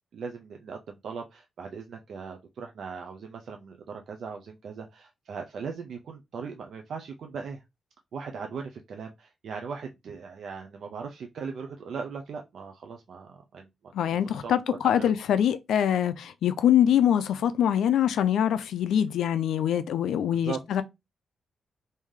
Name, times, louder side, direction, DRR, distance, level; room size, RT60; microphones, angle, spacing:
voice 1, 0.1-7.6 8.1-13.7 14.0-15.1 20.3-20.6, right 5 dB, 55° right, 0.4 m, -39 dB
voice 2, 13.9-20.8, left 10 dB, 90° left, 0.4 m, -24 dB
3.2 x 2.6 x 3.6 m
wide cardioid pair, 175°, 0 cm